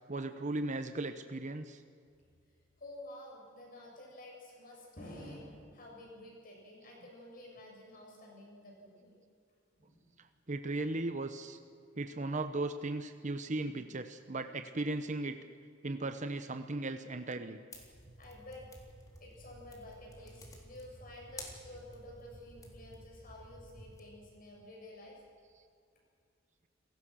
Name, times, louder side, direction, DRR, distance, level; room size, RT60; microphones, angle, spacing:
voice 1, 0.1-1.8 10.5-11.6 12.0-15.4 15.8-17.6, right 2 dB, 40° right, 8 dB, 1.0 m, -37 dB
voice 2, 2.8-9.2 9.8-10.0 18.2-18.7 19.2-25.2, left 1 dB, 50° left, -1 dB, 7.9 m, -51 dB
sound 1, 17.7-24.0, left 1 dB, 20° left, 3.7 m, -52 dB
29.5 x 17.5 x 6.4 m, 2.3 s
head